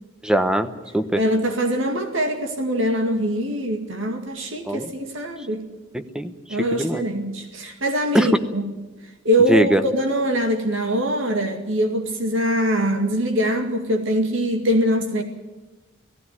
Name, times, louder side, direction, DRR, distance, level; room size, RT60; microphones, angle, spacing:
voice 1, 0.2-1.2 4.6-4.9 5.9-6.3 6.8-7.0 8.1-8.3 9.5-9.8, equal, 5° right, 9 dB, 0.9 m, -21 dB
voice 2, 1.2-5.7 6.5-8.7 9.2-15.2, equal, 75° right, 5 dB, 2.1 m, -23 dB
17.5 x 15.5 x 9.6 m, 1.1 s
head